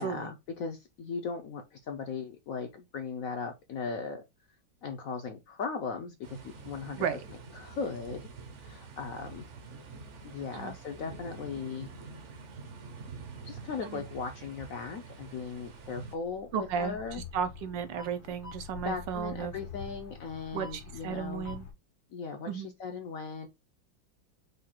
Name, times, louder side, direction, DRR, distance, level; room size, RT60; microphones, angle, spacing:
voice 1, 0.0-4.2 4.8-8.3 8.6-9.4 10.2-11.9 13.4-17.2 18.8-21.5 22.1-23.5, left 5 dB, 65° left, 0.9 m, -38 dB
sound 1, 6.2-16.2, right 4 dB, 55° right, 0.9 m, -46 dB
sound 2, 15.3-21.7, left 6 dB, 80° left, 1.8 m, -46 dB
voice 2, 16.5-17.0 17.3-19.5 20.5-21.7 22.5-22.7, right 7 dB, 80° right, 1.4 m, -34 dB
4.9 x 2.3 x 4.3 m
omnidirectional pair, 2.0 m